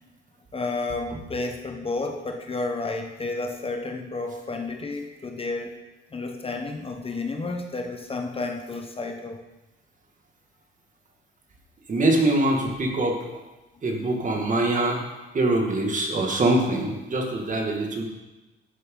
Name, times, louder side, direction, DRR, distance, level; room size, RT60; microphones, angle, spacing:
voice 1, 0.5-5.7 6.1-9.4 14.0-14.1, left 3 dB, 30° left, 4 dB, 1.0 m, -31 dB
voice 2, 11.9-13.4 13.8-15.0 15.3-18.0, right 2 dB, 40° right, 1 dB, 2.1 m, -23 dB
11.5 x 7.9 x 3.9 m, 1.1 s
cardioid pair, 90°, 20 cm